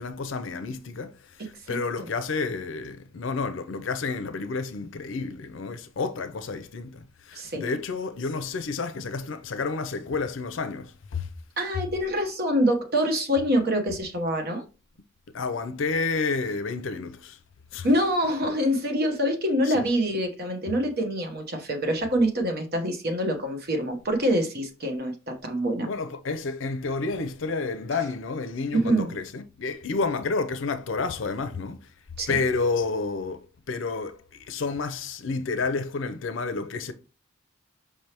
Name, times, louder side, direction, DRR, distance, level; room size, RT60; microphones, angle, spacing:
voice 1, 0.0-11.3 15.3-17.4 17.7-17.9 18.4-18.6 19.7-19.9 25.9-31.9 32.3-36.9, left 4 dB, 70° left, 0.5 m, -30 dB
voice 2, 7.3-7.8 11.6-14.6 17.8-25.9 28.7-29.1 32.2-32.4, equal, 50° right, 1.0 m, -25 dB
5.2 x 3.3 x 2.9 m
head